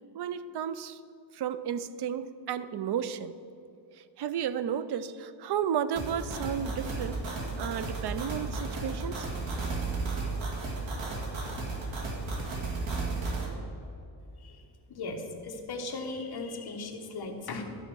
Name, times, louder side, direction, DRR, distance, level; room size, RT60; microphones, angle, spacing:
voice 1, 0.1-1.0 1.3-3.3 4.0-9.3, right 8 dB, 60° right, 13 dB, 0.5 m, -33 dB
sound 1, 6.0-13.5, right 3 dB, 80° right, 2.0 m, -34 dB
voice 2, 14.9-17.6, left 3 dB, 55° left, 2 dB, 1.2 m, -37 dB
12.0 x 4.4 x 6.1 m, 2.6 s
wide cardioid pair, 145°, 46 cm